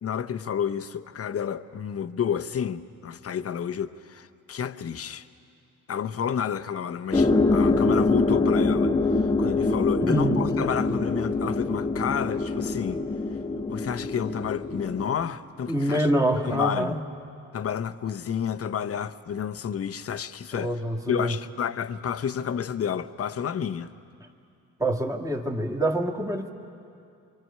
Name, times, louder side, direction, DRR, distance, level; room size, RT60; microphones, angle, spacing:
voice 1, 0.0-5.3 5.9-8.9 9.4-13.0 13.7-17.0 17.5-20.7 21.1-23.9, left 8 dB, 40° left, 0.8 m, -30 dB
sound 1, 7.1-15.3, left 3 dB, 10° left, 0.9 m, -24 dB
voice 2, 10.0-10.4 15.7-17.0 20.5-21.4 24.8-26.5, right 1 dB, 10° right, 1.9 m, -25 dB
25.0 x 24.0 x 5.6 m
supercardioid pair, 75°, 37 cm